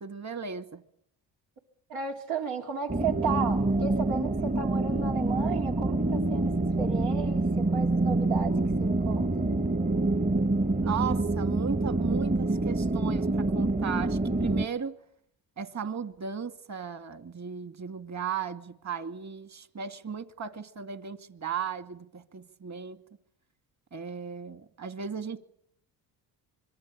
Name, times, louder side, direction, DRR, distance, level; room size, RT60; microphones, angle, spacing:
voice 1, 0.0-0.8 10.8-15.0 15.6-23.0 23.9-25.4, right 7 dB, 35° right, 2.4 m, -36 dB
voice 2, 1.9-6.5 6.8-8.5 8.8-9.5, right 6 dB, 85° right, 4.1 m, -34 dB
sound 1, 2.9-14.7, right 2 dB, 15° right, 1.0 m, -26 dB
26.0 x 22.5 x 8.7 m
supercardioid pair, 70°, 45 cm